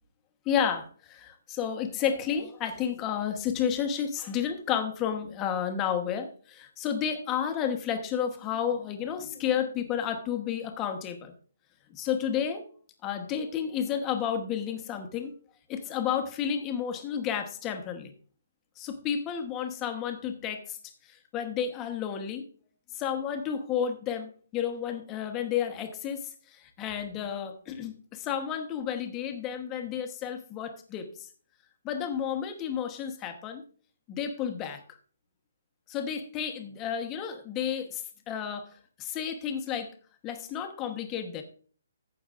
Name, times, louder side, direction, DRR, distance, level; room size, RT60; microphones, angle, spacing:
voice 1, 0.4-11.3 11.9-12.6 13.0-15.3 15.7-18.1 18.8-20.8 21.0-22.4 22.9-26.2 26.5-31.3 31.8-33.6 34.1-34.8 35.9-38.7 39.0-39.9 40.2-41.4, left 8 dB, 15° left, 6 dB, 1.0 m, -31 dB
14.5 x 7.8 x 2.5 m, 0.42 s
hypercardioid pair, 170°, 0 cm